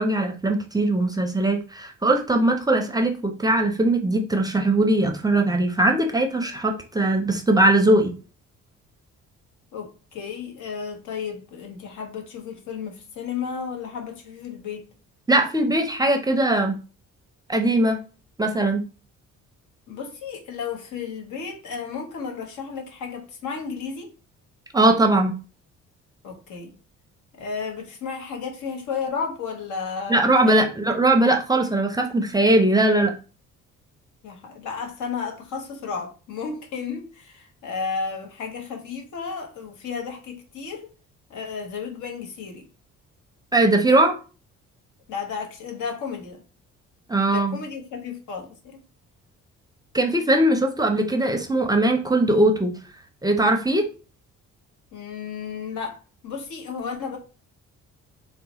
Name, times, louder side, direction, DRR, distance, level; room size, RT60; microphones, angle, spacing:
voice 1, 0.0-8.1 15.3-16.8 17.5-18.0 18.4-18.8 24.7-25.4 30.1-33.1 43.5-44.2 47.1-47.6 49.9-52.7 53.2-53.8, right 2 dB, 15° right, 0.5 m, -20 dB
voice 2, 9.7-14.9 19.9-24.1 26.2-26.7 27.3-30.6 34.2-40.9 41.3-42.7 45.1-46.4 47.3-48.8 54.9-56.0 56.2-57.2, left 5 dB, 80° left, 0.9 m, -33 dB
4.0 x 2.1 x 2.8 m
cardioid pair, 90°, 30 cm